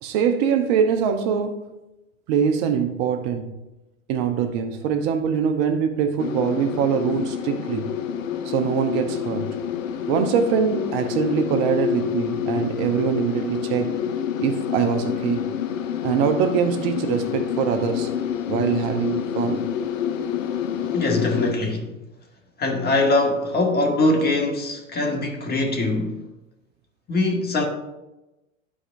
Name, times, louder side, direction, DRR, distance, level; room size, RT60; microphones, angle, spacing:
voice 1, 0.0-1.7 2.3-3.6 4.1-7.9 8.4-9.5 10.1-14.0 14.4-15.5 16.0-18.1 18.5-19.7, right 7 dB, 50° right, 0.9 m, -23 dB
sound 1, 6.2-21.5, left 8 dB, 75° left, 0.7 m, -28 dB
voice 2, 20.9-21.9 22.6-26.1 27.1-27.6, left 2 dB, 25° left, 1.8 m, -22 dB
12.5 x 5.0 x 2.6 m
hypercardioid pair, 95°, 39 cm